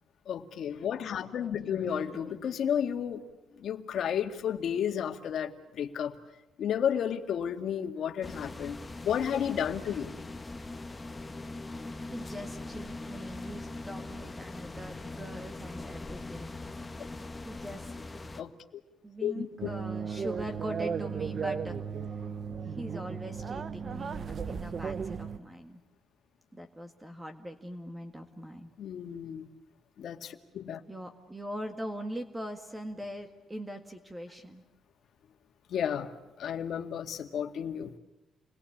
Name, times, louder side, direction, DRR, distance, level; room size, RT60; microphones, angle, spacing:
voice 1, 0.3-3.3 3.6-6.2 6.6-8.8 9.0-10.1 18.4-18.5 19.2-19.7 28.8-29.5 30.0-30.8 35.7-36.1 36.4-37.9, left 8 dB, 65° left, 6 dB, 2.1 m, -32 dB
voice 2, 1.4-2.4 12.1-16.6 17.4-17.9 19.0-22.3 22.6-25.8 26.5-28.7 30.9-34.6, equal, 10° right, 7 dB, 1.8 m, -42 dB
sound 1, 8.2-18.4, left 2 dB, 15° left, 1.5 m, -41 dB
sound 2, 19.6-25.4, right 6 dB, 45° right, 0.9 m, -35 dB
29.5 x 22.0 x 8.7 m, 1.0 s
cardioid pair, 120°, 0 cm